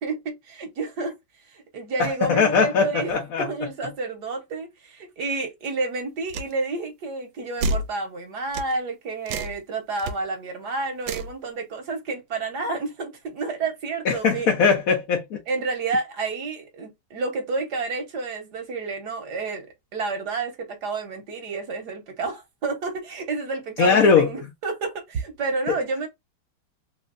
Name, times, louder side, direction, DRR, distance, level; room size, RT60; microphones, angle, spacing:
voice 1, 0.0-1.1 1.5-3.1 3.4-14.5 15.5-19.7 19.9-26.1, right 3 dB, 55° right, 1.5 m, -30 dB
voice 2, 2.0-3.5 14.0-15.4 23.8-24.3 25.7-25.8, left 5 dB, 60° left, 1.0 m, -20 dB
sound 1, 6.3-6.5 7.6-7.9 8.5-8.7 9.3-9.6 10.0-10.1 11.0-11.3, right 2 dB, 75° right, 1.4 m, -28 dB
3.5 x 3.1 x 2.5 m
omnidirectional pair, 2.3 m